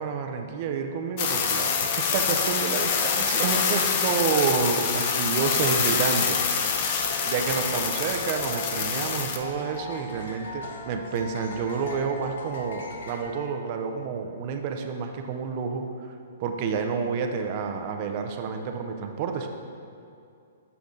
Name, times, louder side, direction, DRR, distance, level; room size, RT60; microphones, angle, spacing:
voice 1, 0.0-6.4 7.2-15.9 16.4-19.5, right 5 dB, 35° right, 5 dB, 0.4 m, -29 dB
sound 1, 1.2-13.2, left 2 dB, 75° left, 0.8 m, -40 dB
sound 2, 1.2-9.4, left 6 dB, 35° left, 0.4 m, -26 dB
6.8 x 3.9 x 3.6 m, 2.5 s
hypercardioid pair, 170°, 0 cm